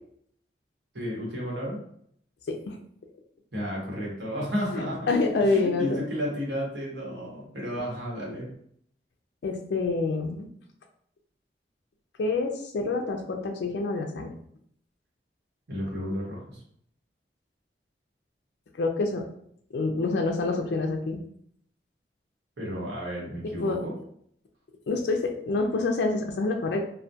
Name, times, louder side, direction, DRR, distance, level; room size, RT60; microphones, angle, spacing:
voice 1, 0.9-1.8 3.5-5.1 5.5-8.5 15.7-16.6 22.6-23.9, equal, 75° right, -4 dB, 1.0 m, -32 dB
voice 2, 2.5-2.8 4.7-6.0 9.4-10.5 12.2-14.3 18.8-19.2 19.7-21.2 23.6-23.8 24.9-26.8, left 3 dB, 70° left, 3 dB, 0.3 m, -27 dB
2.2 x 2.1 x 2.7 m, 0.66 s
head